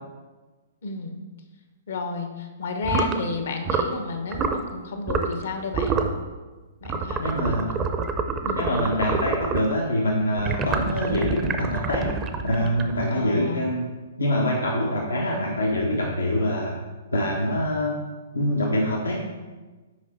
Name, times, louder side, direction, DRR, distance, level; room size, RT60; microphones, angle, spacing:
voice 1, 0.8-1.2 1.9-6.0 6.8-7.9 8.4-8.7 13.1-13.7, left 4 dB, 65° left, 5 dB, 1.0 m, -32 dB
sound 1, 2.8-3.2 3.6-4.0 4.3-4.6 5.1-5.4 5.7-6.2 6.9-9.7 10.4-13.2, right 4 dB, 25° right, 0.6 m, -27 dB
voice 2, 7.2-7.7 8.6-12.1 12.4-13.8 14.2-16.7 17.1-18.0 18.3-19.2, left 1 dB, 85° left, -3 dB, 1.1 m, -25 dB
6.3 x 4.9 x 4.3 m, 1.3 s
figure-of-eight pair, 120°, 0 cm